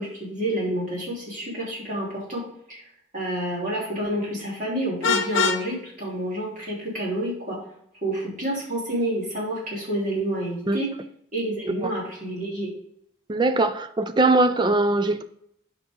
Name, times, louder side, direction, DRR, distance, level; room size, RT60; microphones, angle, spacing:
voice 1, 0.0-2.4 2.7-2.8 3.1-7.6 8.0-10.9 11.3-12.7, right 1 dB, 40° right, 3.2 m, -29 dB
Vehicle horn car horn honking, 5.0-5.7, left 5 dB, 75° left, 0.7 m, -22 dB
voice 2, 13.3-15.2, right 2 dB, 20° right, 0.4 m, -21 dB
8.7 x 5.2 x 3.7 m
head